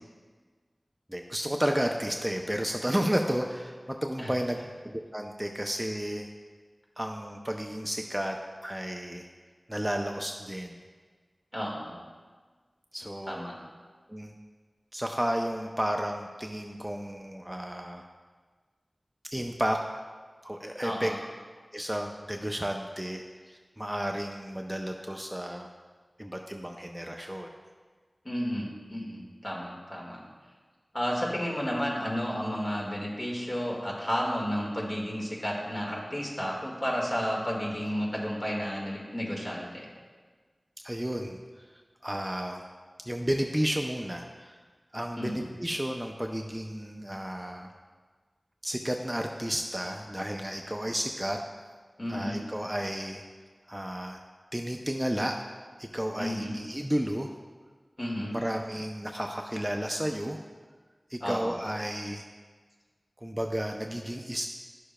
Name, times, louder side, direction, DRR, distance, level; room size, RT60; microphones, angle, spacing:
voice 1, 1.1-4.6 4.8-6.3 7.0-8.4 8.6-9.3 9.7-10.8 12.9-13.4 14.1-14.3 14.9-18.0 19.3-19.8 20.4-21.1 21.7-25.7 26.2-27.5 40.8-41.6 42.0-42.6 43.0-44.6 44.9-47.7 48.6-51.4 52.1-53.2 53.7-54.2 54.5-55.4 55.8-57.3 58.3-60.4 61.1-62.2 63.2-64.5, equal, 10° right, 3 dB, 0.4 m, -32 dB
voice 2, 11.5-12.0 13.3-13.6 20.8-21.2 28.3-30.2 30.9-39.9 45.2-45.5 52.0-52.4 56.2-56.6 58.0-58.4 61.2-61.5, equal, 40° left, -3 dB, 1.8 m, -32 dB
11.0 x 6.6 x 2.2 m, 1.5 s
wide cardioid pair, 60°, 0 cm